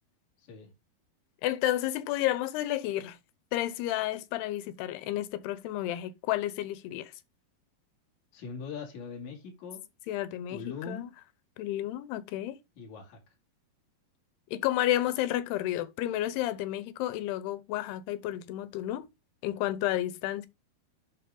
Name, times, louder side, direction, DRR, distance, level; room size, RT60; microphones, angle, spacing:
voice 1, 1.4-3.2 3.5-7.1 10.1-10.6 10.9-11.1 11.6-12.6 14.5-19.1 19.4-20.5, left 14 dB, 90° left, 2.9 m, -31 dB
voice 2, 8.3-9.8 10.5-11.1 12.8-13.2, left 5 dB, 50° left, 3.5 m, -41 dB
11.0 x 4.3 x 3.8 m
omnidirectional pair, 4.6 m